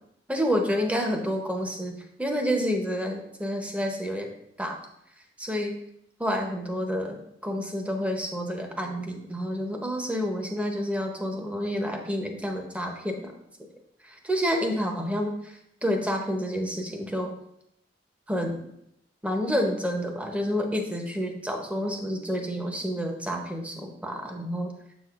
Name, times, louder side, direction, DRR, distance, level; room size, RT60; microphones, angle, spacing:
voice 1, 0.3-4.3 4.6-4.8 5.4-5.7 6.2-7.2 7.4-13.3 14.0-17.3 18.3-18.6 19.2-24.7, equal, 5° right, 3 dB, 0.7 m, -29 dB
7.3 x 6.1 x 2.4 m, 0.77 s
head